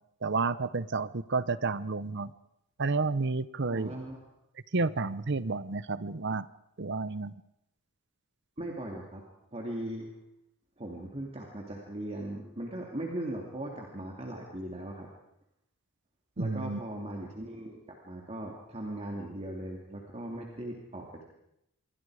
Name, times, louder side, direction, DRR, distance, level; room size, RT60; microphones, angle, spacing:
voice 1, 0.2-2.3 2.8-3.9 4.7-6.5 6.8-7.3 16.4-16.8, right 3 dB, 55° right, 16 dB, 0.8 m, -30 dB
voice 2, 3.7-4.3 8.6-9.2 9.5-10.1 10.8-15.1 16.4-21.2, right 1 dB, 30° right, 0 dB, 2.8 m, -39 dB
27.5 x 23.0 x 5.0 m, 0.80 s
head